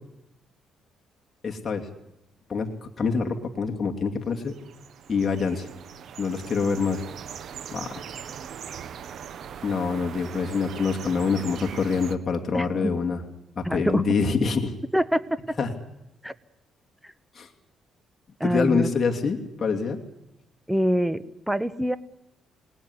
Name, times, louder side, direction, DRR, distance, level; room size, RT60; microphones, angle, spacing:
voice 1, 1.4-1.9 2.5-4.5 5.1-5.7 6.2-7.0 7.7-7.9 9.6-13.2 13.6-14.7 15.6-15.7 17.3-17.5 18.4-20.0, left 5 dB, 35° left, 1 dB, 2.8 m, -25 dB
sound 1, 4.3-12.2, right 8 dB, 65° right, 1.4 m, -40 dB
voice 2, 12.5-12.9 13.6-14.0 14.9-15.2 16.2-16.3 17.0-17.1 18.4-18.9 20.7-22.0, equal, 5° right, 15 dB, 1.2 m, -25 dB
27.0 x 19.5 x 9.9 m, 0.88 s
cardioid pair, 90°, 0 cm